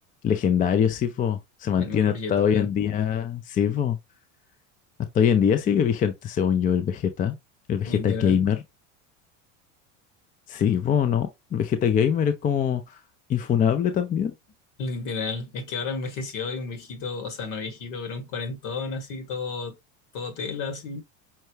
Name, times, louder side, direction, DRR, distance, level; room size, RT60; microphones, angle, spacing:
voice 1, 0.2-4.0 5.1-7.4 7.7-8.6 10.5-13.0 13.3-14.3, left 8 dB, 25° left, 0.4 m, -23 dB
voice 2, 1.8-2.7 7.9-8.5 14.8-19.8 20.1-21.0, left 4 dB, 60° left, 1.8 m, -32 dB
5.6 x 2.2 x 3.2 m
supercardioid pair, 115°, 37 cm